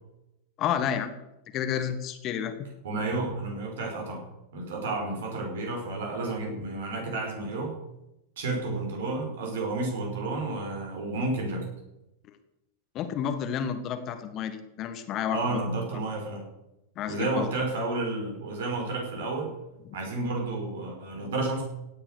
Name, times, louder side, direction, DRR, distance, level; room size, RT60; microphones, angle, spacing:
voice 1, 0.6-1.1 1.5-2.6 12.9-15.6 17.0-17.5, left 8 dB, 35° left, 9 dB, 1.5 m, -30 dB
voice 2, 2.8-4.2 4.5-7.8 8.4-11.7 15.3-16.5 17.1-19.5 19.9-21.6, right 2 dB, 60° right, 1 dB, 5.4 m, -31 dB
17.0 x 9.7 x 6.5 m, 0.91 s
figure-of-eight pair, 90°, 0 cm